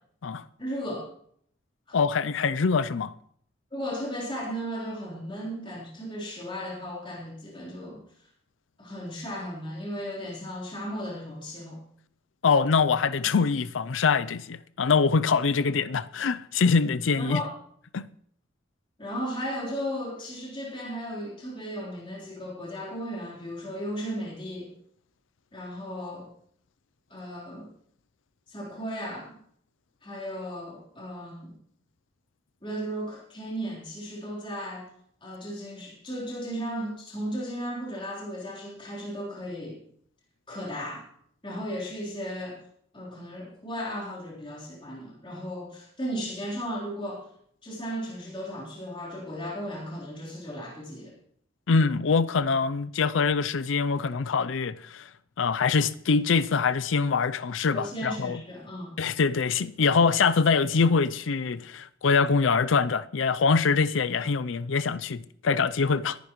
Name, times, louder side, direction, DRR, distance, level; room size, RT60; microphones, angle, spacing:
voice 1, 0.6-1.1 1.9-2.0 3.7-8.0 8.8-11.8 17.2-17.5 19.0-24.7 25.5-26.3 27.1-27.7 28.5-29.4 30.0-31.5 32.6-34.9 35.2-39.8 40.5-41.0 41.4-42.6 42.9-47.3 47.6-51.1 57.7-58.9, equal, 25° left, 3.7 m, -35 dB
voice 2, 1.9-3.1 12.4-17.4 17.9-18.0 51.7-55.1 55.4-58.4 59.0-66.2, left 5 dB, 75° left, 0.5 m, -24 dB
21.5 x 10.5 x 3.1 m
head